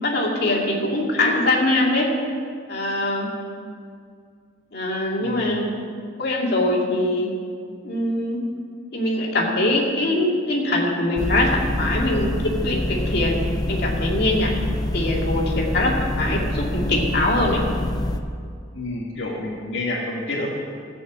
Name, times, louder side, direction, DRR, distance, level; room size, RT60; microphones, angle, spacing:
voice 1, 0.0-2.1 2.7-3.3 4.7-5.7 6.2-7.3 7.8-8.4 8.9-13.4 13.7-14.5 14.9-17.6, left 1 dB, 55° left, -2 dB, 2.4 m, -22 dB
voice 2, 5.2-5.6 18.7-20.5, left 2 dB, 75° left, -5 dB, 1.7 m, -29 dB
sound 1, 11.2-18.2, left 1 dB, 20° left, 0.6 m, -26 dB
16.0 x 6.2 x 7.4 m, 2.2 s
head